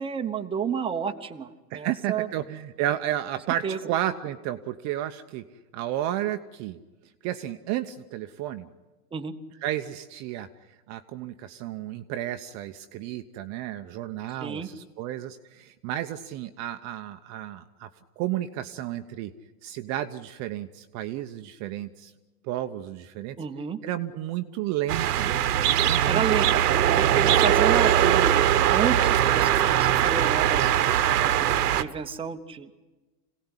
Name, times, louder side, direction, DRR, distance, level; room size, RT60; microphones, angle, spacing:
voice 1, 0.0-2.3 3.6-3.8 9.1-9.3 14.4-14.7 23.4-23.8 25.8-26.6 27.0-30.7 31.3-32.8, right 7 dB, 10° right, 6 dB, 1.1 m, -31 dB
voice 2, 1.7-5.4 5.7-6.8 7.2-8.7 9.6-10.5 10.9-17.9 18.2-19.3 19.6-22.1 22.4-23.4 23.8-25.3 25.8-26.2 27.4-27.5 29.0-29.4 31.0-31.3, right 12 dB, 35° right, 8 dB, 0.9 m, -32 dB
sound 1, 24.9-31.8, right 11 dB, 70° right, 1.4 m, -21 dB
26.5 x 18.0 x 9.9 m, 1.2 s
hypercardioid pair, 130°, 48 cm